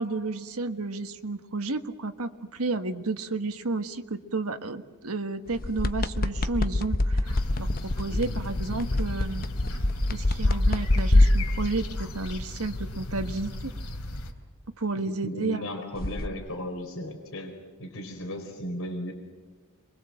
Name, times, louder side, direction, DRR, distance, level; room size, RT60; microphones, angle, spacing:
voice 1, 0.0-7.7 8.0-9.4 10.1-13.7 14.8-15.6, right 3 dB, 75° right, 7 dB, 1.5 m, -32 dB
sound 1, 5.5-12.1 16.0-16.3, left 1 dB, 45° left, 1.0 m, -25 dB
sound 2, 7.2-14.3, left 1 dB, 85° left, 3.3 m, -36 dB
voice 2, 8.1-8.4 15.0-19.1, equal, 65° left, 3 dB, 4.5 m, -36 dB
27.5 x 23.5 x 7.7 m, 1.3 s
head